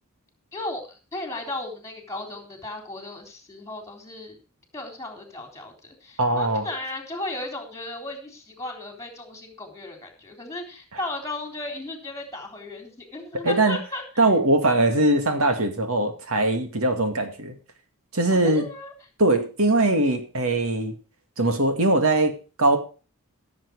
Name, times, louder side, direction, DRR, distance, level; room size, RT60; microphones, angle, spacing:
voice 1, 0.5-4.4 4.7-14.3 18.3-18.9, left 2 dB, 15° left, 3 dB, 3.6 m, -35 dB
voice 2, 6.2-6.6 13.4-13.8 14.2-17.5 18.1-18.7 19.2-20.9 21.4-22.3 22.6-22.8, right 2 dB, 70° right, 6 dB, 2.2 m, -21 dB
16.0 x 7.5 x 4.8 m, 0.35 s
head